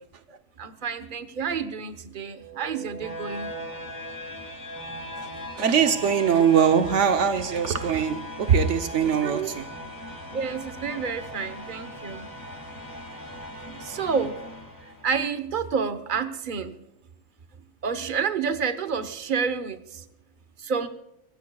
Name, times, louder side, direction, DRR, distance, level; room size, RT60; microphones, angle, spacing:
voice 1, 0.6-3.5 9.2-9.5 10.3-12.3 13.7-14.4 15.0-16.7 17.8-20.1 20.6-20.9, right 6 dB, 45° right, 1.1 m, -29 dB
sound 1, 2.3-15.3, equal, 15° left, 2.3 m, -39 dB
voice 2, 5.6-9.6, right 7 dB, 80° right, 1.2 m, -22 dB
25.0 x 15.5 x 2.3 m
omnidirectional pair, 1.2 m